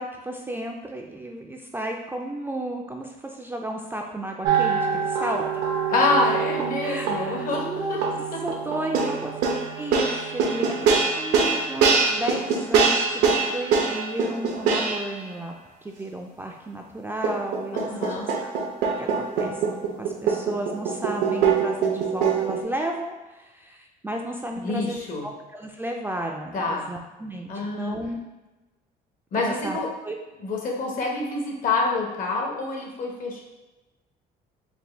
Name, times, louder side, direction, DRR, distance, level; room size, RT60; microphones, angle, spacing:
voice 1, 0.0-5.8 6.8-8.1 8.4-9.4 9.7-15.5 15.8-18.5 19.0-19.6 20.0-27.5 27.8-28.2 29.4-30.2, right 1 dB, 10° right, 1 dB, 0.3 m, -33 dB
sound 1, 4.4-15.2 17.2-22.6, right 5 dB, 90° right, 0.6 m, -24 dB
voice 2, 5.9-8.0 11.3-11.6 17.7-18.3 24.6-25.3 26.5-26.9 27.5-27.9 29.3-29.9 30.4-33.4, left 3 dB, 55° left, -1 dB, 0.9 m, -27 dB
4.2 x 2.2 x 3.3 m, 1.1 s
cardioid pair, 110°, 17 cm